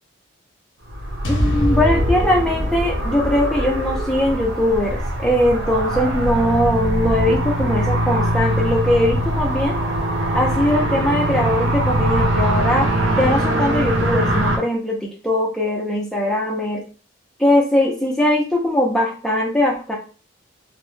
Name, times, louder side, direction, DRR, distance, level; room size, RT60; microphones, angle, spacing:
sound 1, 0.9-14.6, right 1 dB, 65° right, 0.5 m, -22 dB
sound 2, 1.2-5.5, equal, 60° left, 0.6 m, -26 dB
voice 1, 1.3-9.7 10.3-16.8 17.4-20.0, left 1 dB, ahead, -3 dB, 0.4 m, -20 dB
2.2 x 2.0 x 3.1 m, 0.37 s
head